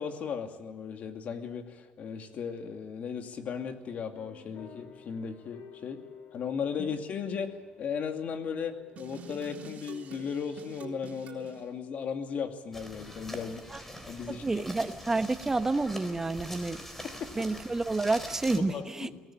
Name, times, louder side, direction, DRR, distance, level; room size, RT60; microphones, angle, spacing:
voice 1, 0.0-6.0 6.3-14.6 17.2-17.5 18.7-19.2, left 6 dB, 50° left, 5 dB, 2.5 m, -36 dB
sound 1, 4.2-12.3, left 7 dB, 70° left, 4.7 m, -55 dB
sound 2, 9.0-11.6, right 5 dB, 50° right, 3.7 m, -46 dB
sound 3, 12.7-18.6, equal, 10° left, 3.6 m, -44 dB
voice 2, 14.3-16.8 17.4-19.1, right 3 dB, 15° right, 9 dB, 1.1 m, -29 dB
23.0 x 18.0 x 9.0 m, 1.3 s
cardioid pair, 135°, 3 cm